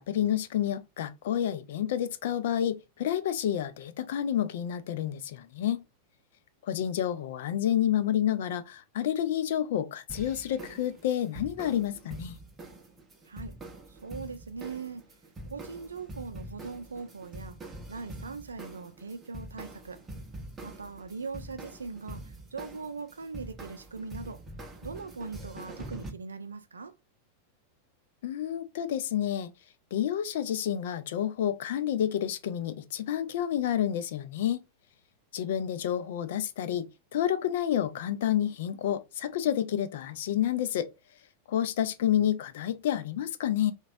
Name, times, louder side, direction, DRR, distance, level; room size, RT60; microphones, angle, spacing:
voice 1, 0.0-5.8 6.6-12.4 28.2-29.5 29.9-34.6 35.3-40.9 41.5-43.7, left 10 dB, 55° left, 0.3 m, -29 dB
sound 1, 10.1-26.1, right 1 dB, 15° right, 0.7 m, -45 dB
voice 2, 13.9-15.0 15.4-20.0 20.6-24.4 24.8-26.9, right 4 dB, 75° right, 0.4 m, -40 dB
2.9 x 2.2 x 2.6 m
figure-of-eight pair, 90°, 0 cm